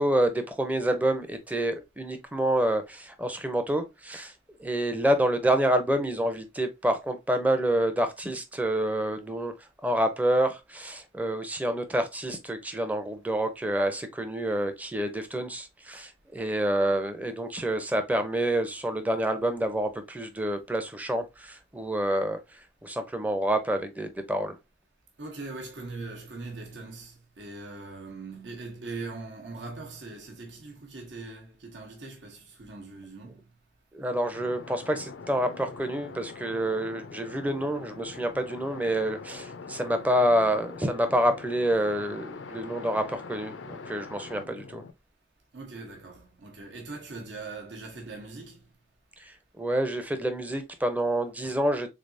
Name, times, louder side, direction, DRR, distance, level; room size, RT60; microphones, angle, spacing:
voice 1, 0.0-4.3 4.6-9.5 9.8-24.6 33.9-44.8 49.2-51.9, right 1 dB, 10° right, 0.5 m, -28 dB
voice 2, 25.2-33.4 45.5-48.6, right 3 dB, 80° right, 0.9 m, -41 dB
sound 1, 34.3-44.9, left 4 dB, 85° left, 0.4 m, -43 dB
3.8 x 3.3 x 2.5 m
head